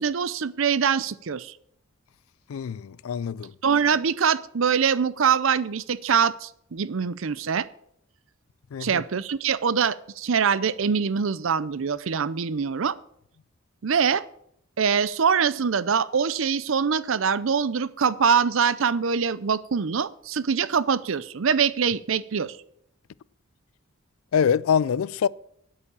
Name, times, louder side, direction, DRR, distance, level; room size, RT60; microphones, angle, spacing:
voice 1, 0.0-1.5 3.6-7.7 8.8-13.0 13.8-14.2 14.8-22.6, right 6 dB, 65° right, 0.5 m, -24 dB
voice 2, 2.5-3.5 8.7-9.0 24.3-25.3, left 7 dB, 75° left, 0.4 m, -24 dB
9.7 x 8.4 x 7.0 m
head